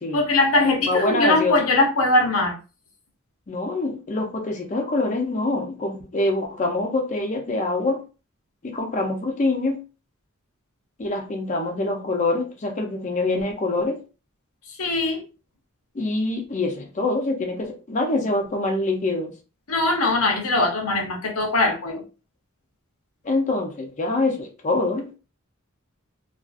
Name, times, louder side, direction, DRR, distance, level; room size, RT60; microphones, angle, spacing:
voice 1, 0.1-2.6 14.8-15.2 19.7-22.0, left 2 dB, 85° left, 0.7 m, -21 dB
voice 2, 0.8-1.5 3.5-8.0 8.7-9.8 11.0-14.0 15.9-19.3 23.2-25.1, left 2 dB, 35° left, 0.5 m, -25 dB
2.4 x 2.4 x 2.4 m
head